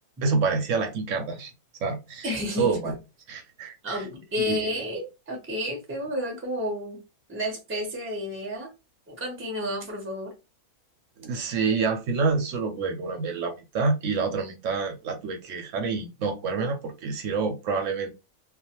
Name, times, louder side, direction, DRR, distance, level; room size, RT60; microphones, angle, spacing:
voice 1, 0.2-1.5 1.8-2.9 3.3-4.0 4.5-4.7 11.2-18.1, right 4 dB, 65° right, 0.8 m, -27 dB
voice 2, 2.2-2.9 3.8-7.0 7.3-8.7 9.1-10.3, left 1 dB, 15° right, 0.4 m, -31 dB
2.4 x 2.3 x 2.8 m
omnidirectional pair, 1.6 m